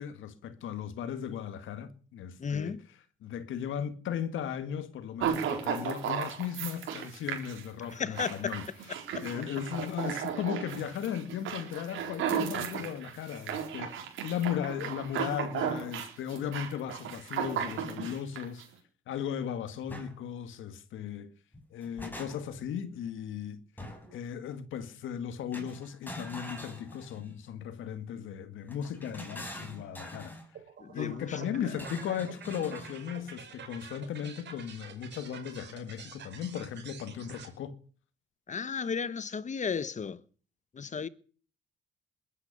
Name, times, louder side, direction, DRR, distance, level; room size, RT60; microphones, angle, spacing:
voice 1, 0.0-2.8 3.2-8.7 9.2-18.6 19.1-21.3 21.7-23.6 24.1-30.4 30.9-37.8, left 9 dB, 80° left, 2.0 m, -36 dB
voice 2, 2.4-2.8 8.0-8.6 9.1-9.2 30.8-31.4 38.5-40.2 40.7-41.1, left 6 dB, 35° left, 1.1 m, -34 dB
sound 1, 5.2-18.6, right 8 dB, 85° right, 4.5 m, -35 dB
sound 2, 19.9-20.1 21.5-22.7 23.8-24.2 25.5-27.4 28.7-30.5 31.7-33.0, equal, 10° left, 6.0 m, -44 dB
sound 3, 30.5-37.5, right 7 dB, 60° right, 5.1 m, -48 dB
21.5 x 9.8 x 6.7 m
cardioid pair, 90°, 20 cm